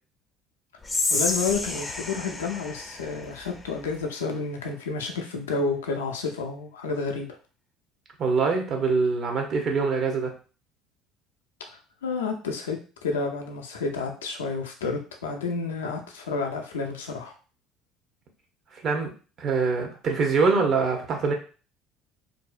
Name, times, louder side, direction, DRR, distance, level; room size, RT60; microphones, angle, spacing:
Whispering, 0.8-4.0, left 3 dB, 20° left, 0.4 m, -30 dB
voice 1, 1.1-7.3 12.0-17.3, left 4 dB, 90° left, 3 dB, 0.4 m, -30 dB
voice 2, 8.2-10.3 18.8-19.1 19.4-21.3, right 4 dB, 50° right, 3 dB, 0.7 m, -24 dB
2.6 x 2.0 x 2.4 m, 0.37 s
hypercardioid pair, 70°, 0 cm